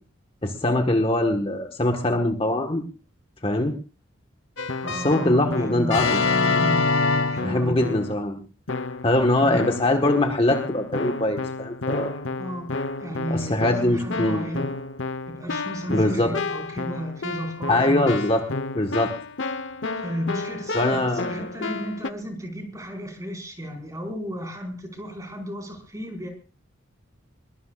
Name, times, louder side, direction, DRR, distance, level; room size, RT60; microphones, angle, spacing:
voice 1, 0.4-2.8 3.4-3.7 4.9-6.2 7.4-8.4 9.0-12.1 13.3-14.4 15.9-16.3 17.7-18.4 18.7-19.1 20.7-21.4, left 1 dB, 30° left, 4 dB, 1.6 m, -22 dB
Keyboard (musical), 4.6-8.2 8.7-9.2 9.6-22.1, left 3 dB, 65° left, 1.1 m, -29 dB
voice 2, 4.8-8.1 9.4-9.6 12.4-12.7 13.0-14.8 15.3-18.2 20.0-26.3, equal, 15° right, 2 dB, 5.4 m, -33 dB
22.0 x 21.5 x 2.5 m, 0.35 s
head